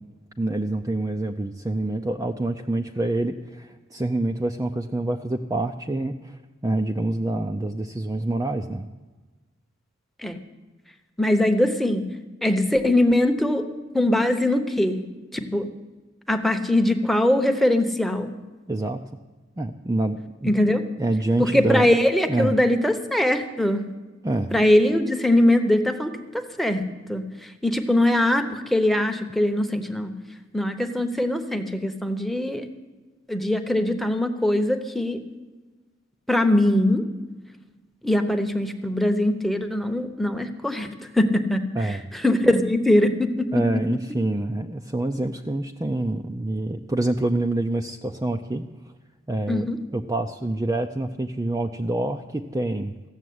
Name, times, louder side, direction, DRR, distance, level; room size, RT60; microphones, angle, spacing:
voice 1, 0.4-6.4 6.6-8.9 18.7-19.0 19.6-20.5 21.0-21.9 22.3-22.5 24.2-24.5 41.7-42.0 43.5-48.6 49.3-52.9, right 2 dB, 15° right, 4 dB, 0.5 m, -26 dB
voice 2, 11.2-12.0 12.4-13.6 13.9-15.1 15.3-15.7 16.3-18.3 20.4-20.8 21.4-23.8 24.5-26.8 27.1-27.3 27.6-30.1 30.5-32.7 33.3-35.2 36.3-37.0 38.0-40.9 41.2-43.8 49.5-49.8, left 1 dB, ahead, 6 dB, 0.9 m, -21 dB
15.0 x 7.3 x 9.4 m, 1.3 s
head